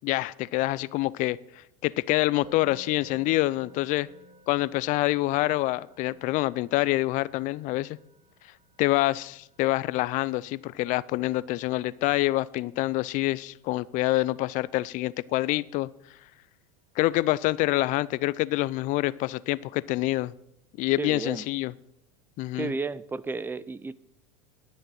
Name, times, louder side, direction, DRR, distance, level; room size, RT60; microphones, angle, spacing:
voice 1, 0.0-1.4 1.8-4.1 4.5-8.0 8.8-15.9 17.0-20.3 20.8-21.7 22.4-22.7, left 18 dB, 45° left, 0.5 m, -26 dB
Musical instrument, 2.4-13.5, right 2 dB, 30° right, 3.5 m, -56 dB
voice 2, 21.0-21.5 22.5-23.9, right 4 dB, 10° right, 0.5 m, -32 dB
10.5 x 6.5 x 7.4 m
hypercardioid pair, 105°, 18 cm